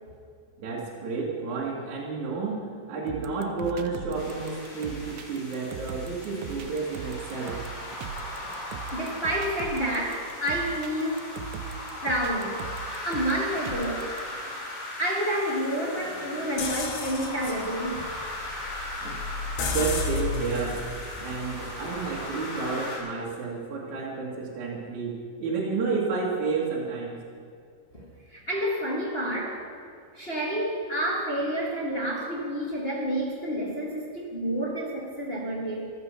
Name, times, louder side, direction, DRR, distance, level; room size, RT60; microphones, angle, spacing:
voice 1, 0.6-2.6 2.9-7.6 19.0-20.8 21.2-27.2, right 4 dB, 55° right, -4 dB, 2.9 m, -31 dB
sound 1, 3.1-14.2, right 8 dB, 80° right, 2.3 m, -39 dB
sound 2, 4.1-23.0, left 1 dB, 60° left, 4.9 m, -38 dB
voice 2, 8.9-11.3 12.0-12.6 13.0-14.1 15.0-18.0 27.9-28.0 28.3-29.6 30.1-35.9, right 1 dB, 30° left, -5 dB, 1.1 m, -29 dB
sound 3, 16.6-22.4, left 4 dB, 75° left, 3.2 m, -34 dB
15.0 x 12.5 x 5.8 m, 2.3 s
omnidirectional pair, 4.5 m